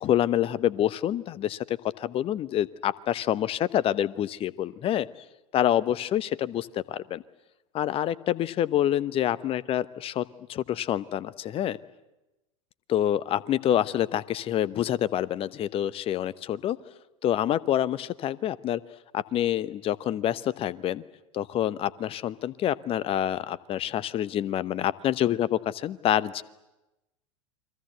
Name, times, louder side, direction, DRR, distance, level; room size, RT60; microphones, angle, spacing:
voice 1, 0.0-5.1 5.5-7.2 7.7-11.8 12.9-16.8 17.2-18.8 19.1-21.0 21.3-26.4, left 11 dB, 35° left, 17 dB, 1.0 m, -27 dB
29.0 x 23.0 x 8.0 m, 0.98 s
figure-of-eight pair, 90°, 17 cm